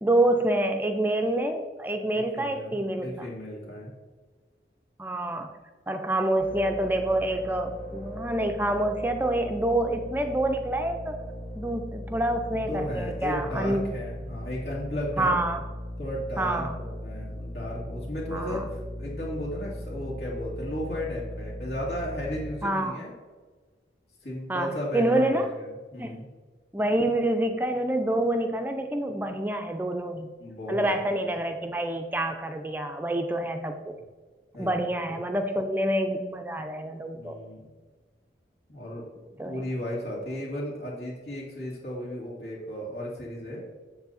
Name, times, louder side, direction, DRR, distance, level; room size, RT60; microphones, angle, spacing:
voice 1, 0.0-3.3 5.0-5.5 5.9-11.2 11.6-13.8 15.2-15.6 16.4-16.8 18.3-18.7 22.6-23.0 24.5-25.5 26.0-26.2 26.7-30.3 30.7-33.9 34.6-37.4 39.4-39.6, right 1 dB, 10° right, 6 dB, 0.4 m, -27 dB
voice 2, 2.1-3.9 12.5-15.4 16.0-23.1 24.2-26.3 30.4-31.0 34.5-35.2 37.1-37.6 38.7-39.0 39.4-43.6, equal, 70° left, -6 dB, 2.4 m, -35 dB
sound 1, 6.4-22.5, equal, 45° left, 1.6 m, -38 dB
7.2 x 7.2 x 4.2 m, 1.4 s
head